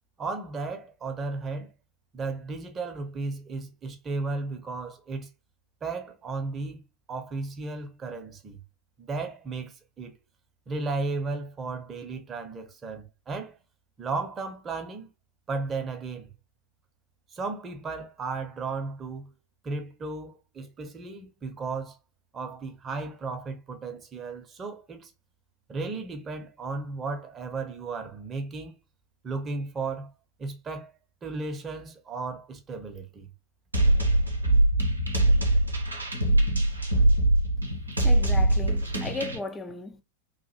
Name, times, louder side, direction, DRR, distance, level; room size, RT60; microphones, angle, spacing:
voice 1, 0.2-1.7 2.1-5.3 5.8-6.8 7.1-8.6 9.0-10.1 10.7-13.6 14.0-15.1 15.5-16.3 17.3-19.3 19.6-22.0 22.3-25.1 25.7-28.8 29.2-30.1 30.4-30.9 31.2-33.3, right 3 dB, 20° right, 0.8 m, -34 dB
sound 1, 33.7-39.4, right 1 dB, 80° right, 0.7 m, -22 dB
voice 2, 38.0-40.0, left 3 dB, 15° left, 0.5 m, -36 dB
3.1 x 2.5 x 2.8 m
figure-of-eight pair, 90°, 0 cm